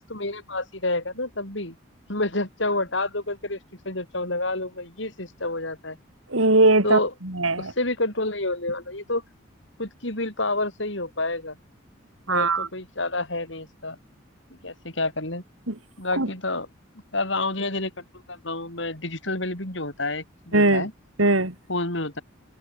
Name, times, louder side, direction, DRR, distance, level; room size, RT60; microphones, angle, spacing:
voice 1, 0.1-1.7 2.1-3.6 3.8-6.0 6.8-7.1 7.6-9.2 9.8-11.5 12.3-14.0 14.6-15.4 16.0-16.7 17.1-17.9 18.3-20.9 21.7-22.2, left 2 dB, 65° left, 6.7 m, -28 dB
voice 2, 6.3-7.0 7.2-7.7 12.3-12.7 15.7-15.8 16.2-16.3 20.5-20.9 21.2-21.5, right 2 dB, 85° right, 4.5 m, -20 dB
head